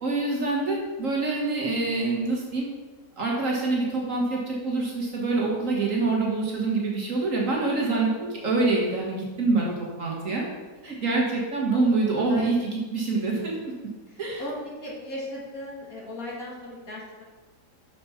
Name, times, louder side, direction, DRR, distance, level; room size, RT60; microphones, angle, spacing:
voice 1, 0.0-2.7 3.2-10.4 10.8-13.6 14.2-14.4, right 3 dB, 50° right, -2 dB, 1.6 m, -26 dB
voice 2, 14.8-17.2, left 1 dB, 55° left, -4 dB, 2.1 m, -37 dB
5.9 x 5.1 x 5.6 m, 1.3 s
omnidirectional pair, 1.8 m